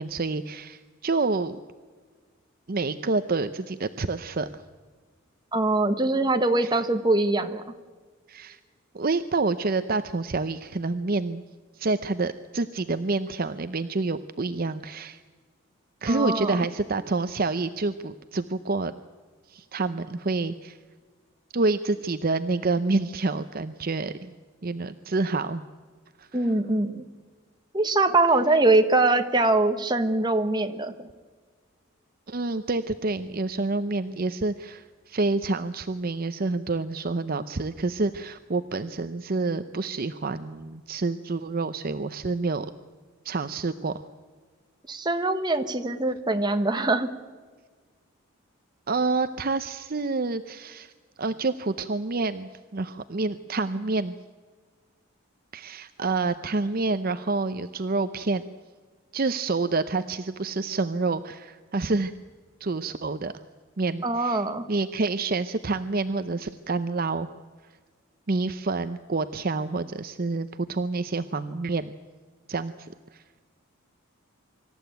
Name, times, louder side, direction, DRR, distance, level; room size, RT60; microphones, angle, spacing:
voice 1, 0.0-1.6 2.7-4.6 6.6-6.7 8.3-8.6 8.9-11.4 11.7-15.2 16.0-18.9 19.5-20.8 21.5-24.3 24.6-25.6 26.2-26.5 32.3-42.7 43.2-43.9 48.9-50.9 51.2-54.1 55.5-58.4 59.1-62.1 62.6-63.3 63.8-67.3 68.3-71.9 72.5-73.2, right 3 dB, 45° right, 11 dB, 0.6 m, -28 dB
voice 2, 5.5-7.6 16.1-16.6 26.3-27.0 27.7-31.1 44.9-47.1 64.0-64.6, right 2 dB, 20° right, 6 dB, 1.3 m, -23 dB
25.5 x 14.0 x 9.2 m, 1.5 s
head